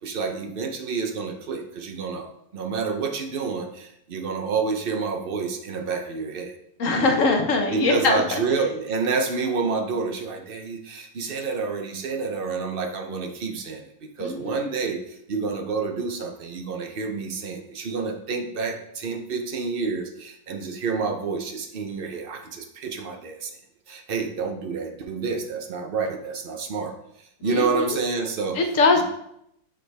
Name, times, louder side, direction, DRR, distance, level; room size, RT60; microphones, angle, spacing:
voice 1, 0.0-6.5 7.7-23.6 23.9-26.9 27.4-28.6 29.0-29.1, right 4 dB, 50° right, 4 dB, 0.7 m, -28 dB
voice 2, 6.8-8.4 14.2-14.7 27.4-28.0 28.5-29.0, left 3 dB, 60° left, 4 dB, 1.0 m, -22 dB
6.3 x 4.9 x 3.3 m, 0.76 s
omnidirectional pair, 1.7 m